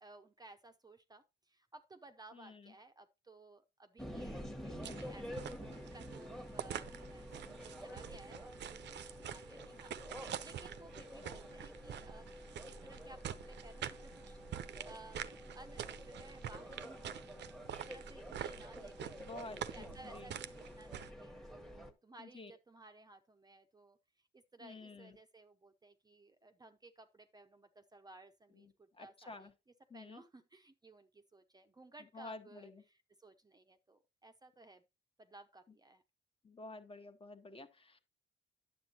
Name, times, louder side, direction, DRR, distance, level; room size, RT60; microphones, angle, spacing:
voice 1, 0.0-12.3 12.6-14.4 14.8-15.3 15.5-17.4 17.7-19.2 19.7-29.5 29.9-34.8 35.2-36.0, right 2 dB, 20° right, 0.6 m, -58 dB
voice 2, 2.3-2.7 4.1-5.1 11.1-11.4 19.2-20.3 22.2-22.5 24.6-25.2 28.5-29.5 29.9-30.2 32.1-32.8 36.4-38.0, left 2 dB, 25° left, 1.1 m, -51 dB
sound 1, 4.0-21.9, equal, ahead, 1.2 m, -49 dB
sound 2, 4.8-21.1, right 10 dB, 60° right, 0.6 m, -47 dB
9.4 x 7.5 x 2.8 m
cardioid pair, 90°, 20 cm